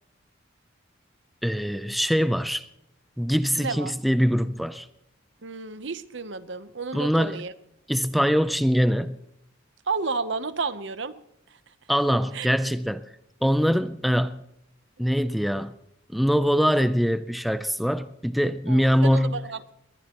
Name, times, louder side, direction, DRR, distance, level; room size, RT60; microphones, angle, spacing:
voice 1, 1.4-2.7 3.2-4.9 6.9-7.5 7.9-9.2 11.9-13.0 13.4-14.4 15.0-15.7 16.1-19.4, equal, ahead, 0.5 m, -23 dB
voice 2, 3.6-3.9 5.4-7.5 9.9-11.1 12.3-12.5 18.7-19.8, right 4 dB, 65° right, 0.9 m, -31 dB
21.0 x 20.0 x 3.0 m
head